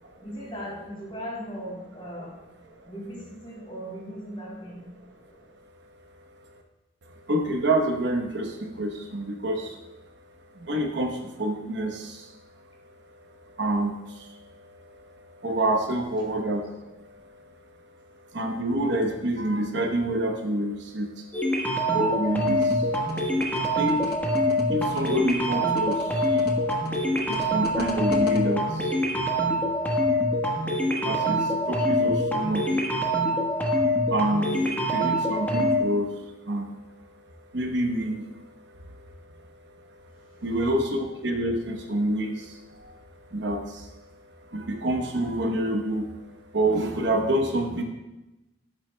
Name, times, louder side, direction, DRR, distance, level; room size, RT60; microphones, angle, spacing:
voice 1, 0.2-2.3 2.8-4.9, equal, 30° left, -4 dB, 3.1 m, -38 dB
voice 2, 7.0-10.1 10.5-12.4 12.8-17.5 18.3-21.3 21.6-23.0 23.5-24.2 24.7-26.5 27.2-36.7 37.5-39.4 39.7-47.8, right 1 dB, 65° right, 3 dB, 0.9 m, -29 dB
sound 1, 21.3-35.8, equal, 10° left, 1.2 m, -25 dB
sound 2, 22.5-28.4, left 3 dB, 55° left, 1.0 m, -37 dB
13.5 x 7.4 x 2.2 m, 1.0 s
head